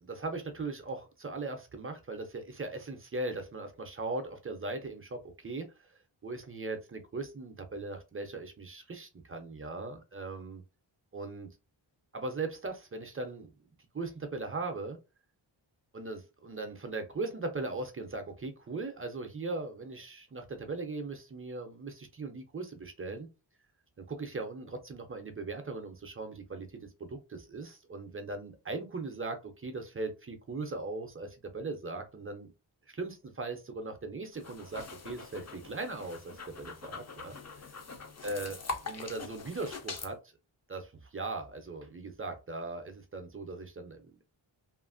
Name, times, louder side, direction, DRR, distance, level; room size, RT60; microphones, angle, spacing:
voice 1, 0.0-10.6 11.1-11.5 12.1-13.5 13.9-15.0 15.9-23.3 24.1-32.5 32.9-37.3 38.2-38.6 38.8-40.3 40.7-44.2, right 3 dB, 30° right, 6 dB, 0.4 m, -39 dB
sound 1, 34.3-40.1, left 3 dB, 35° left, 0.4 m, -43 dB
2.8 x 2.4 x 2.4 m, 0.28 s
wide cardioid pair, 175°, 48 cm